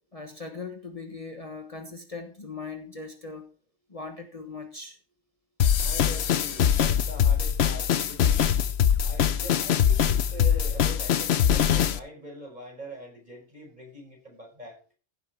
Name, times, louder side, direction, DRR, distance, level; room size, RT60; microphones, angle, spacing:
voice 1, 0.1-3.5 3.9-5.0 8.8-8.9, left 4 dB, 30° left, 4 dB, 1.3 m, -39 dB
sound 1, 5.6-12.0, left 8 dB, 70° left, 1.0 m, -23 dB
voice 2, 5.8-8.4 9.0-14.8, equal, 40° right, 1 dB, 5.3 m, -43 dB
15.5 x 7.7 x 3.6 m, 0.38 s
omnidirectional pair, 1.1 m